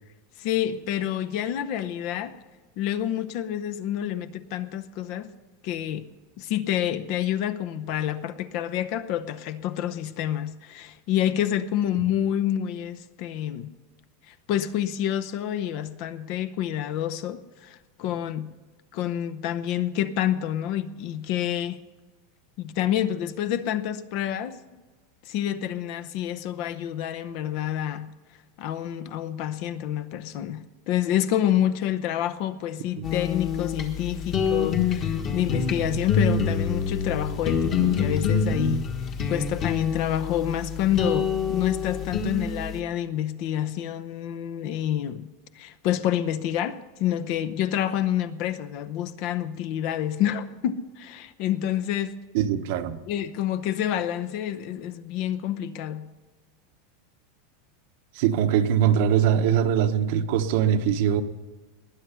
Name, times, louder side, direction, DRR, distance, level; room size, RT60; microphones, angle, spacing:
voice 1, 0.4-2.4 2.8-5.3 5.6-6.1 6.4-13.7 14.3-18.6 18.9-21.8 22.6-24.8 25.3-28.1 28.6-38.9 39.3-52.2 53.1-56.1, left 11 dB, 40° left, 0.7 m, -28 dB
sound 1, 33.0-42.8, left 6 dB, 25° left, 1.4 m, -26 dB
voice 2, 52.3-53.0 58.2-61.2, right 9 dB, 50° right, 0.9 m, -22 dB
20.0 x 9.3 x 5.6 m
supercardioid pair, 175°, 0 cm